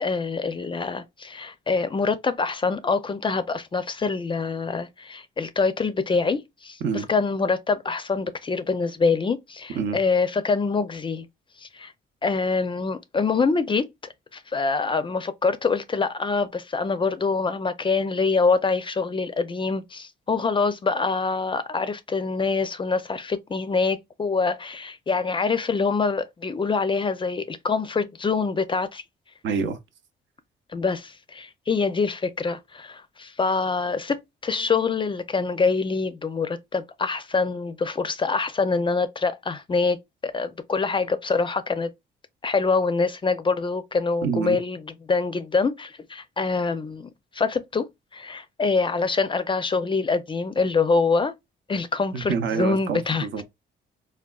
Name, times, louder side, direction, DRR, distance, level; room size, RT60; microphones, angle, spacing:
voice 1, 0.0-6.8 7.1-11.3 11.6-11.9 12.2-13.9 14.3-29.0 30.7-40.0 40.2-41.9 42.4-44.8 45.1-51.3 51.7-53.3, left 4 dB, 25° left, 0.4 m, -25 dB
voice 2, 29.4-29.8 34.5-34.6 44.2-44.6 52.1-53.4, right 6 dB, 75° right, 0.6 m, -27 dB
3.5 x 2.2 x 2.2 m
cardioid pair, 90°, 20 cm